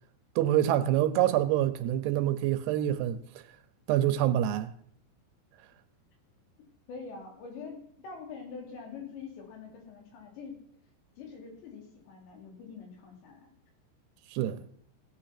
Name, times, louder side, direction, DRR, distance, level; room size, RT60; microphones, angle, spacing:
voice 1, 0.4-3.2 3.9-4.7 14.3-14.6, right 12 dB, 80° right, 2.6 m, -26 dB
voice 2, 6.9-10.6 11.2-13.5, left 5 dB, 80° left, 5.0 m, -44 dB
16.5 x 8.6 x 5.9 m
omnidirectional pair, 5.1 m